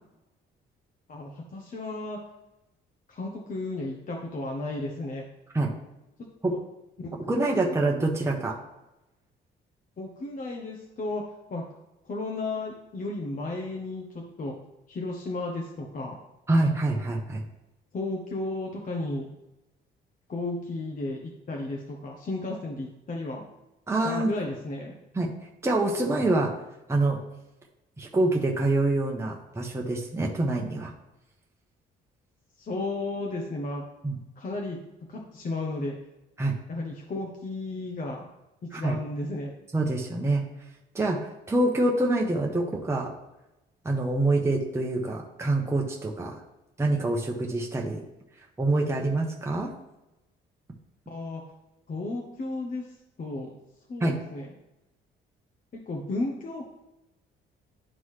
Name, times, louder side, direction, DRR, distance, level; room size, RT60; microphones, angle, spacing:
voice 1, 1.1-2.2 3.1-5.2 6.5-6.6 7.0-7.1 10.0-11.2 11.5-11.6 12.0-14.6 14.9-16.2 17.9-19.3 20.3-23.4 24.0-24.9 32.6-33.8 34.4-34.8 35.1-35.9 36.7-38.3 38.6-39.5 51.1-51.4 51.9-53.5 53.9-54.5 55.7-56.6, left 2 dB, 45° left, 0 dB, 1.0 m, -33 dB
voice 2, 7.3-8.6 16.5-17.4 23.9-24.3 25.1-25.3 25.6-26.5 26.9-27.2 28.0-30.9 34.0-34.2 36.4-36.5 38.7-39.0 39.7-40.4 40.9-43.1 43.8-46.4 46.8-48.0 48.6-49.7 54.0-54.1, right 2 dB, 15° right, -1 dB, 1.0 m, -26 dB
11.0 x 3.9 x 3.2 m, 0.95 s
cardioid pair, 90°, 20 cm